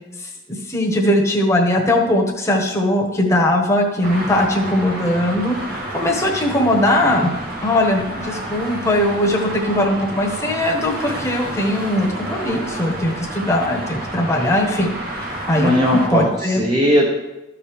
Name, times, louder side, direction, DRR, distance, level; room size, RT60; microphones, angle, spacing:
voice 1, 0.7-5.6 5.9-7.3 7.6-15.0 15.2-15.7 16.1-16.6, left 1 dB, 15° left, -1 dB, 1.2 m, -19 dB
Traffic noise roadway noise, 4.0-16.1, right 1 dB, 50° right, 1.7 m, -30 dB
voice 2, 15.5-17.1, equal, 25° right, -4 dB, 1.0 m, -18 dB
13.5 x 4.8 x 3.5 m, 1.0 s
head